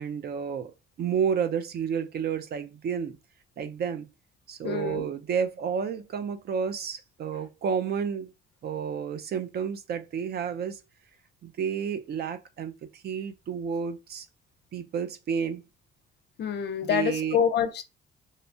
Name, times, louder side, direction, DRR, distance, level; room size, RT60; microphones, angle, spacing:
voice 1, 0.0-3.2 3.6-4.1 4.5-8.3 8.6-10.8 11.4-14.3 14.7-15.6 16.8-17.4, right 7 dB, 55° right, 0.4 m, -31 dB
voice 2, 4.6-5.1 16.4-17.8, left 8 dB, 60° left, 0.5 m, -26 dB
2.7 x 2.1 x 2.6 m
cardioid pair, 90°, 20 cm